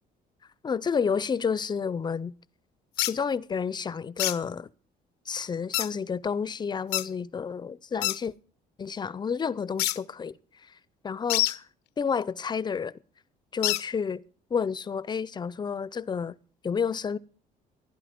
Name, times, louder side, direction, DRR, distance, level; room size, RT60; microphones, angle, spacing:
voice 1, 0.6-2.4 3.0-4.7 5.3-8.3 8.8-10.4 10.7-10.8 11.0-11.7 12.0-12.9 13.5-14.2 14.5-16.4 16.6-17.2, left 6 dB, 25° left, 0.5 m, -30 dB
sound 1, 3.0-3.1 4.2-4.4 5.7-5.9 6.9-7.1 8.0-8.2 9.8-10.0 11.3-11.6 13.6-13.8, left 17 dB, 85° left, 0.6 m, -26 dB
15.0 x 11.5 x 5.1 m
cardioid pair, 110°, 17 cm